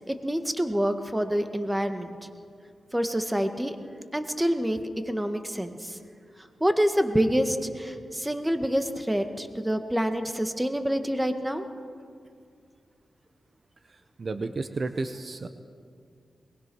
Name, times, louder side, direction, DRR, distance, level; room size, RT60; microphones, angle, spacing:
voice 1, 0.1-2.1 2.9-3.8 4.1-4.8 5.1-6.0 6.6-11.6, equal, 10° right, 7 dB, 1.7 m, -27 dB
voice 2, 14.2-15.5, right 3 dB, 50° right, 9 dB, 0.9 m, -32 dB
21.5 x 20.0 x 6.3 m, 2.3 s
cardioid pair, 50°, 0 cm